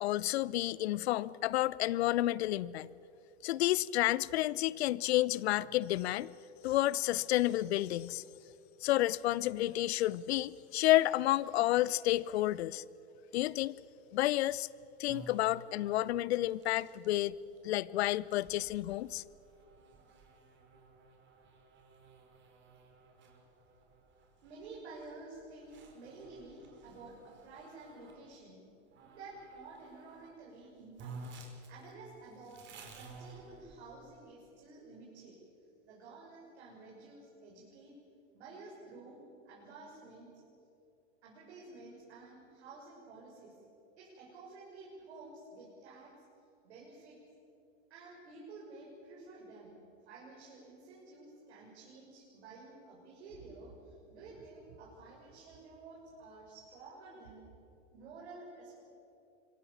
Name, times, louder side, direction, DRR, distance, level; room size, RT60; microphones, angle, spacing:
voice 1, 0.0-2.9 3.4-6.3 6.6-8.2 8.8-12.8 13.3-13.8 14.1-14.7 15.0-17.3 17.6-19.2, left 15 dB, 65° left, 21 dB, 0.8 m, -30 dB
sound 1, 15.1-28.2 28.9-30.4 30.6-30.7 31.0-34.1, right 3 dB, 35° right, 5.0 m, -54 dB
voice 2, 24.4-28.6 29.0-31.2 31.7-35.4 35.9-38.0 38.3-39.2 39.5-40.3 41.2-43.6 44.0-46.2 46.6-47.2 47.9-57.4 57.9-58.8, right 3 dB, 70° right, -4 dB, 7.2 m, -51 dB
26.0 x 24.0 x 7.3 m, 2.7 s
hypercardioid pair, 105°, 35 cm